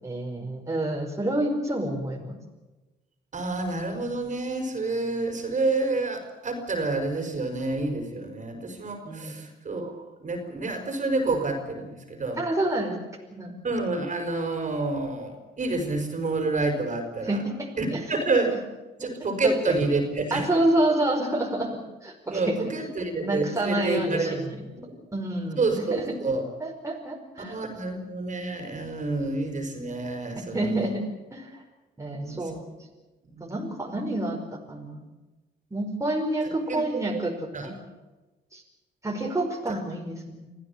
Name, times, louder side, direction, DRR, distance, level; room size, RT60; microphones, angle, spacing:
voice 1, 0.0-2.4 9.0-9.4 12.4-13.0 13.3-13.5 17.3-18.0 19.0-19.1 19.4-19.8 20.3-22.6 23.2-24.7 25.1-26.1 26.6-27.6 30.5-31.0 31.3-31.6 32.0-32.7 33.4-35.1 35.7-37.8 38.5-38.6 39.0-40.5, right 1 dB, 15° right, 0 dB, 5.0 m, -28 dB
voice 2, 3.3-9.9 10.2-12.4 13.6-17.4 17.8-18.6 19.0-20.5 22.3-24.4 24.7-25.0 25.6-26.4 27.4-30.9 32.1-32.4 33.3-33.5 36.7-37.1 37.5-37.7, right 3 dB, 40° right, 5 dB, 5.4 m, -28 dB
25.5 x 15.5 x 8.7 m, 1.1 s
cardioid pair, 90°, 20 cm